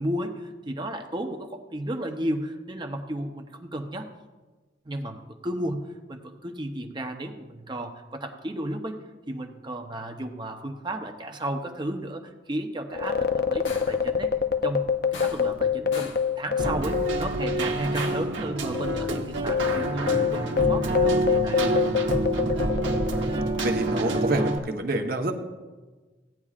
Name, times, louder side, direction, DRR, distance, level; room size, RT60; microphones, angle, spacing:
voice 1, 0.0-4.1 4.8-9.0 9.3-14.3 14.6-14.9 15.2-20.4 20.7-21.9, right 1 dB, 25° right, 5 dB, 0.7 m, -33 dB
sound 1, 12.9-17.7 18.0-18.1 18.7-23.5, left 7 dB, 55° left, 0.5 m, -26 dB
sound 2, 13.6-14.1 15.1-15.6 15.9-16.3 17.9-18.4, left 3 dB, 90° left, 1.2 m, -40 dB
Keyboard (musical), 16.6-24.6, right 2 dB, 80° right, 1.0 m, -27 dB
voice 2, 23.6-25.3, right 2 dB, 50° right, 4 dB, 1.0 m, -27 dB
16.5 x 9.7 x 2.5 m, 1.3 s
head